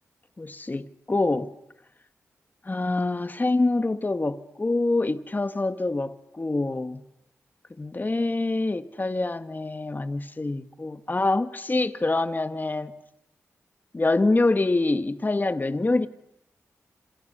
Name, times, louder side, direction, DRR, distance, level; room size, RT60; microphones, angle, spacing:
voice 1, 0.4-1.5 2.6-7.0 7.8-12.9 13.9-16.1, left 2 dB, 30° left, 1.7 m, -25 dB
29.0 x 27.0 x 6.8 m
cardioid pair, 45°, 6 cm